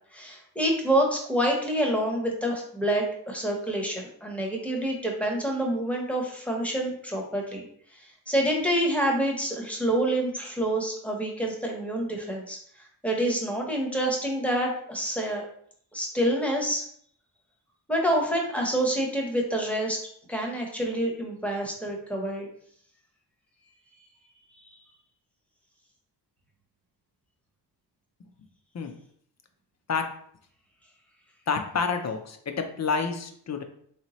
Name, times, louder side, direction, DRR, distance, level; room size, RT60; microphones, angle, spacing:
voice 1, 0.1-7.7 7.9-8.0 8.3-12.6 13.0-15.4 15.9-16.8 17.9-20.0 20.3-22.5, right 1 dB, 5° left, 0 dB, 0.8 m, -27 dB
voice 2, 31.5-33.6, left 5 dB, 40° left, 6 dB, 0.5 m, -29 dB
3.3 x 2.9 x 3.0 m, 0.63 s
wide cardioid pair, 95°, 42 cm